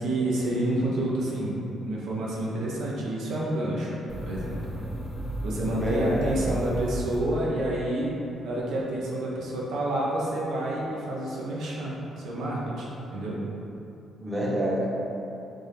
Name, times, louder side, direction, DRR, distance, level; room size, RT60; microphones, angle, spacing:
voice 1, 0.0-3.9 4.2-4.6 5.4-8.1 8.4-12.9 13.1-13.4, right 1 dB, 80° right, -5 dB, 0.6 m, -29 dB
sound 1, 4.1-7.8, equal, 15° left, 0.5 m, -34 dB
voice 2, 5.6-6.4 14.2-14.9, equal, 20° right, -5 dB, 0.8 m, -28 dB
3.5 x 2.8 x 3.2 m, 2.9 s
cardioid pair, 90°, 0 cm